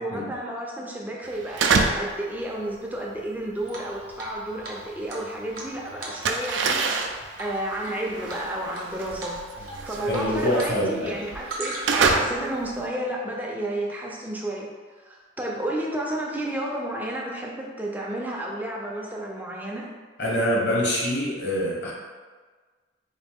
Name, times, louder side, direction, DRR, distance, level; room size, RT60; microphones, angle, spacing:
voice 1, 0.0-6.8 7.4-14.7 15.1-19.9, right 1 dB, 10° right, -2 dB, 0.5 m, -31 dB
sound 1, 1.3-2.2 2.5-5.4 5.7-12.9, right 4 dB, 70° right, 0.3 m, -27 dB
Drip, 3.7-4.4 4.6-4.7 5.1-6.6 6.9-7.1 7.4-7.9 8.3-8.8 9.2-9.4 9.7-10.7 11.0-12.1, right 2 dB, 50° right, 0.8 m, -37 dB
voice 2, 10.1-11.2 20.2-21.9, equal, 60° left, -5 dB, 1.1 m, -25 dB
4.0 x 2.5 x 3.5 m, 1.4 s
head